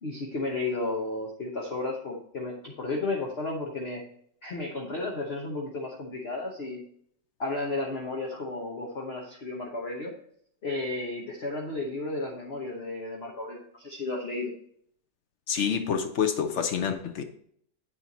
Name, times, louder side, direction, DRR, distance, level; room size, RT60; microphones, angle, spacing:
voice 1, 0.0-4.0 4.4-6.8 7.4-10.1 10.6-14.5, left 2 dB, 40° left, -1 dB, 1.0 m, -33 dB
voice 2, 15.5-17.3, left 7 dB, 75° left, 6 dB, 0.6 m, -27 dB
8.3 x 4.5 x 4.0 m, 0.65 s
omnidirectional pair, 2.0 m